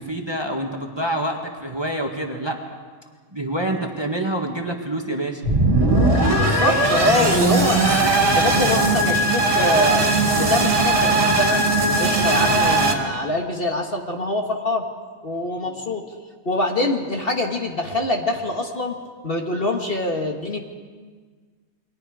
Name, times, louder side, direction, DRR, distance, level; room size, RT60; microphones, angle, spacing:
voice 1, 0.0-2.8 3.3-5.4 15.6-15.8, right 1 dB, 20° right, 2 dB, 1.7 m, -27 dB
sound 1, 5.4-12.9, right 2 dB, 50° right, 2.7 m, -18 dB
voice 2, 6.3-10.1 10.4-11.6 12.0-14.8 15.2-16.0 16.5-19.0 19.2-20.6, left 2 dB, 40° left, 2 dB, 1.9 m, -24 dB
29.0 x 22.5 x 4.9 m, 1.5 s
omnidirectional pair, 1.5 m